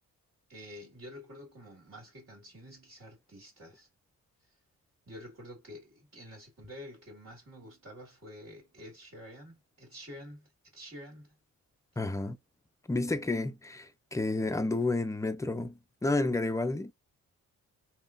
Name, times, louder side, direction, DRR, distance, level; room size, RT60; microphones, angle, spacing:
voice 1, 0.5-3.9 5.1-11.4, equal, 45° right, 2.1 m, -49 dB
voice 2, 12.0-12.4 12.9-16.9, left 2 dB, 10° left, 0.4 m, -31 dB
3.6 x 2.3 x 2.5 m
cardioid pair, 85°, 33 cm